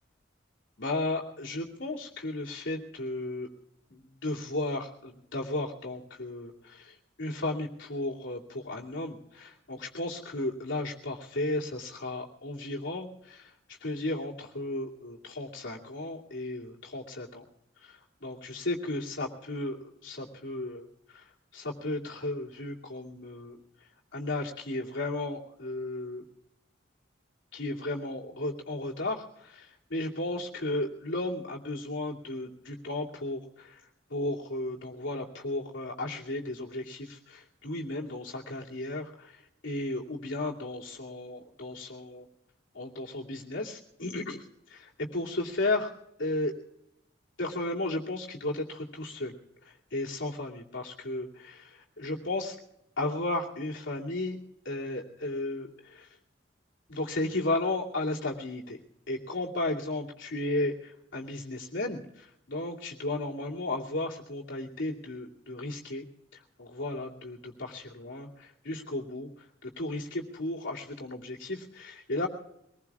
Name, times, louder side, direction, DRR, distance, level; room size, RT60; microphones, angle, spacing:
voice 1, 0.8-3.5 3.9-13.5 13.8-17.4 17.8-20.9 21.1-21.2 21.5-23.6 24.1-26.2 27.5-33.8 34.1-39.4 39.6-42.3 42.7-44.4 44.7-45.9 46.2-46.5 47.4-49.3 49.6-52.6 53.0-54.4 54.6-56.1 56.9-58.8 59.1-66.0 66.3-69.3 69.6-72.3, left 2 dB, 80° left, -3 dB, 2.6 m, -34 dB
24.5 x 20.0 x 2.4 m, 0.80 s
head